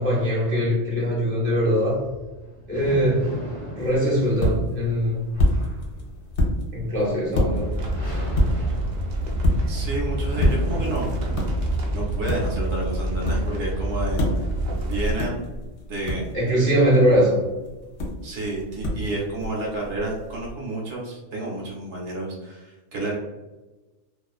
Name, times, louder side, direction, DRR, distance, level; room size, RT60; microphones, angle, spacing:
voice 1, 0.0-2.0 2.7-3.4 3.8-5.2 6.7-7.7 16.3-17.4, equal, 15° left, -6 dB, 0.4 m, -21 dB
sound 1, 1.6-12.0, equal, 25° right, 0.7 m, -38 dB
sound 2, 3.8-20.5, left 1 dB, 65° left, 0.9 m, -29 dB
sound 3, 7.5-15.1, right 1 dB, 85° right, 0.4 m, -27 dB
voice 2, 9.7-11.1 11.9-14.5 14.8-15.4 15.9-16.3 18.2-23.2, right 2 dB, 65° right, -3 dB, 1.0 m, -30 dB
2.4 x 2.3 x 2.3 m, 1.1 s
omnidirectional pair, 1.3 m